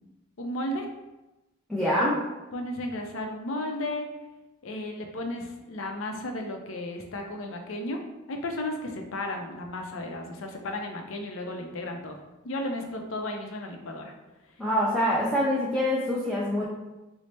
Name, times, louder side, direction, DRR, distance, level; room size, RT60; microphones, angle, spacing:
voice 1, 0.4-0.9 2.5-4.1 4.6-8.0 8.3-12.2 12.4-14.1, left 1 dB, 75° left, 3 dB, 0.5 m, -34 dB
voice 2, 1.7-2.2 14.6-16.7, left 1 dB, ahead, -7 dB, 0.5 m, -25 dB
4.1 x 2.0 x 3.2 m, 1.0 s
head